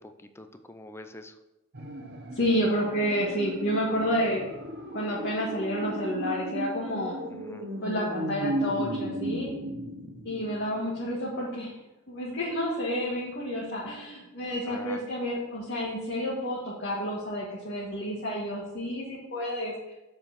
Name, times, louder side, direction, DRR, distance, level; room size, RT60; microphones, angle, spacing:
voice 1, 0.0-1.3 7.3-7.7 14.7-15.0, left 1 dB, 10° left, 8 dB, 0.5 m, -45 dB
sound 1, 1.7-10.9 11.2-11.3, right 1 dB, 55° right, 1.0 m, -35 dB
voice 2, 2.3-4.4 4.9-7.2 7.8-9.5 10.2-11.7 12.1-19.7, equal, 55° left, -5 dB, 1.7 m, -30 dB
7.3 x 4.8 x 5.8 m, 0.95 s
head